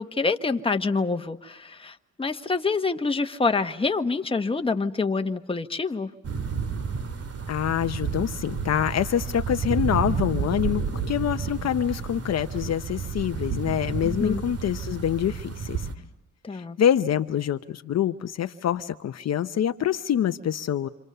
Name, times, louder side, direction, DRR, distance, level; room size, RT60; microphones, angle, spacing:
voice 1, 0.0-6.1 14.0-14.4 16.4-16.8, left 4 dB, 20° left, 7 dB, 1.4 m, -26 dB
sound 1, 6.2-15.9, right 6 dB, 55° right, 2.4 m, -31 dB
voice 2, 7.5-15.9 16.5-20.9, left 10 dB, 60° left, 9 dB, 0.9 m, -26 dB
28.5 x 27.0 x 6.8 m, 0.94 s
cardioid pair, 90°, 30 cm